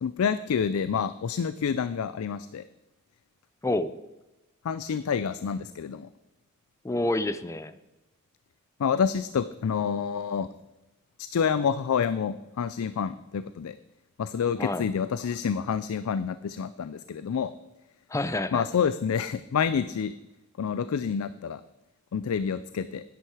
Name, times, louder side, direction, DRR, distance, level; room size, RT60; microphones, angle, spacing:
voice 1, 0.0-2.6 4.6-6.1 8.8-10.5 11.2-13.8 14.2-17.5 18.5-20.1 20.6-21.6 22.1-23.0, left 7 dB, 80° left, 13 dB, 0.4 m, -28 dB
voice 2, 6.8-7.8 14.6-14.9 18.1-18.7, left 2 dB, 15° left, 14 dB, 0.4 m, -28 dB
10.5 x 9.3 x 4.8 m, 0.98 s
head